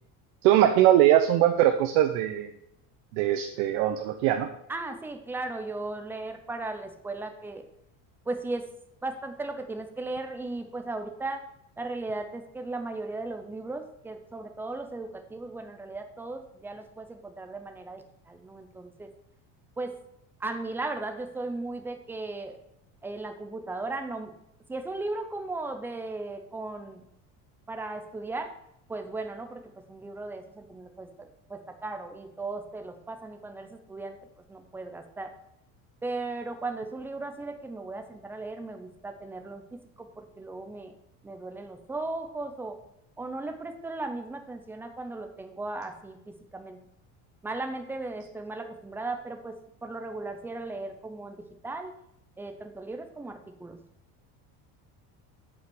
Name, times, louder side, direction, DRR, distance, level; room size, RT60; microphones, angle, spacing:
voice 1, 0.4-2.5 3.1-4.5, right 12 dB, 85° right, 6 dB, 0.9 m, -21 dB
voice 2, 4.7-7.6 8.3-8.7 9.0-11.4 11.8-19.1 19.8-20.0 20.4-22.6 23.0-24.3 24.7-27.0 27.7-28.5 28.9-29.6 29.9-34.2 34.5-35.3 36.0-40.9 41.2-42.8 43.2-46.8 47.4-49.6 49.8-51.9 52.4-53.8, right 2 dB, 5° right, 6 dB, 0.5 m, -36 dB
8.3 x 5.5 x 6.1 m, 0.78 s
cardioid pair, 175°, 36 cm